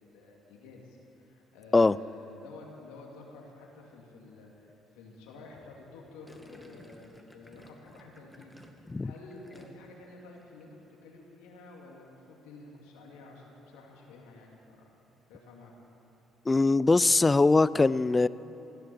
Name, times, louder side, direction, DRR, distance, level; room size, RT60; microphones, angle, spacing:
voice 1, 0.0-10.8 11.0-14.6 15.3-15.7, left 3 dB, 80° left, -1 dB, 2.6 m, -50 dB
Gurgling, 6.3-10.0 10.3-10.7, equal, ahead, 2.0 m, -54 dB
voice 2, 16.5-18.3, left 3 dB, 25° left, 18 dB, 0.4 m, -22 dB
15.5 x 10.5 x 7.0 m, 2.9 s
hypercardioid pair, 55°, 0 cm